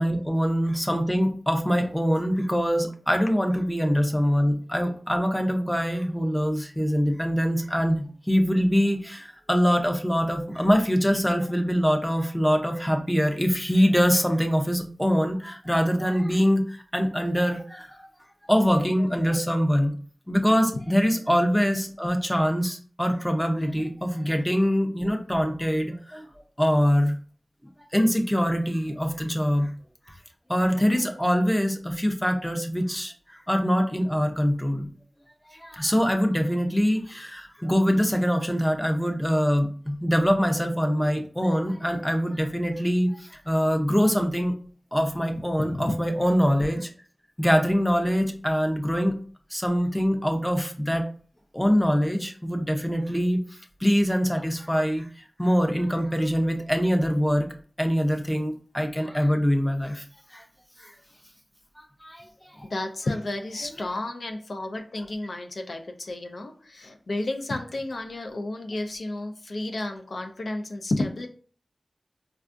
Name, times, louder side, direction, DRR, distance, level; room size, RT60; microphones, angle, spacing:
voice 1, 0.0-18.1 18.5-19.9 20.3-26.3 26.6-27.2 27.9-29.7 30.5-34.9 35.5-44.5 44.9-46.9 47.4-49.1 49.5-51.1 51.5-53.4 53.8-57.5 57.8-60.0 60.3-60.4 60.8-60.9 61.8-62.2 62.5-62.7, equal, 5° left, 4 dB, 0.5 m, -24 dB
voice 2, 45.6-46.0 62.6-71.3, left 2 dB, 75° left, 5 dB, 0.4 m, -31 dB
4.4 x 2.3 x 2.5 m, 0.43 s
wide cardioid pair, 80°, 0 cm